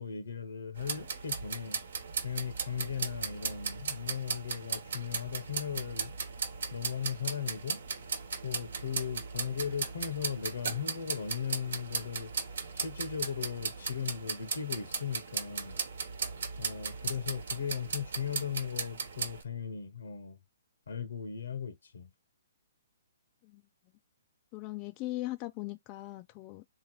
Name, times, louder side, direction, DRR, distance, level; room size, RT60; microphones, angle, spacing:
voice 1, 0.0-6.1 6.7-7.8 8.4-12.3 12.7-15.8 16.6-20.4 20.9-22.1, left 7 dB, 70° left, 0.9 m, -37 dB
sound 1, 0.8-19.4, right 5 dB, 70° right, 1.0 m, -37 dB
voice 2, 24.5-26.6, left 18 dB, 30° left, 0.3 m, -39 dB
3.7 x 2.7 x 3.0 m
hypercardioid pair, 135°, 0 cm